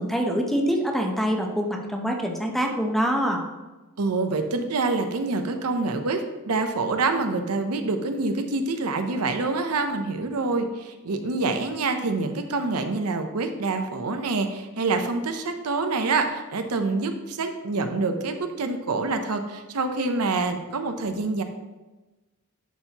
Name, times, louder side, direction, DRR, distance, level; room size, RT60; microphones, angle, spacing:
voice 1, 0.0-3.5, equal, ahead, 1 dB, 0.7 m, -25 dB
voice 2, 4.0-21.4, right 3 dB, 85° right, 6 dB, 0.7 m, -26 dB
10.5 x 4.5 x 2.9 m, 1.1 s
head